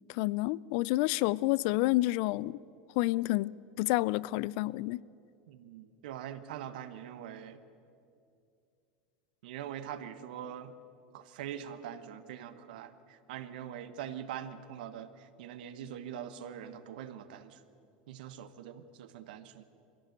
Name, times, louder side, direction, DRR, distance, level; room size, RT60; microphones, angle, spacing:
voice 1, 0.1-2.6 3.0-5.0, left 19 dB, 60° left, 0.4 m, -29 dB
voice 2, 5.5-7.6 9.4-10.7 11.1-17.6 18.1-19.6, right 9 dB, 75° right, 1.3 m, -43 dB
22.5 x 16.0 x 8.1 m
hypercardioid pair, 95°, 5 cm